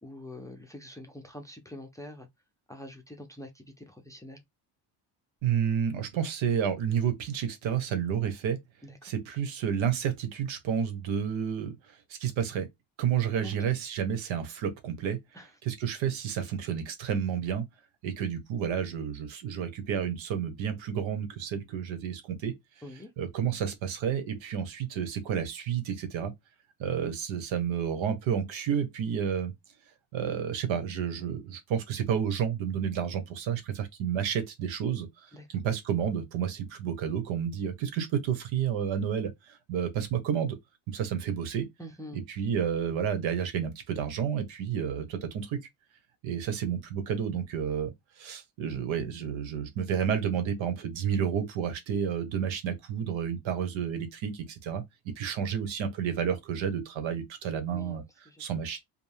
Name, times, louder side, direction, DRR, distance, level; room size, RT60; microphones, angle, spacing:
voice 1, 0.0-2.3 2.7-4.4 8.8-9.1 13.4-13.5 15.3-15.5 22.8-23.1 35.3-35.6 41.8-42.2 57.7-58.4, left 1 dB, 10° left, 0.5 m, -45 dB
voice 2, 5.4-8.6 9.0-11.7 12.1-12.7 13.0-15.2 15.6-17.6 18.0-22.6 23.2-26.3 26.8-29.5 30.1-35.1 35.5-40.6 40.9-41.7 42.1-45.6 46.2-47.9 48.2-54.8 55.2-58.0 58.4-58.8, right 8 dB, 85° right, 1.3 m, -30 dB
5.1 x 2.3 x 3.4 m
cardioid pair, 160°, 45 cm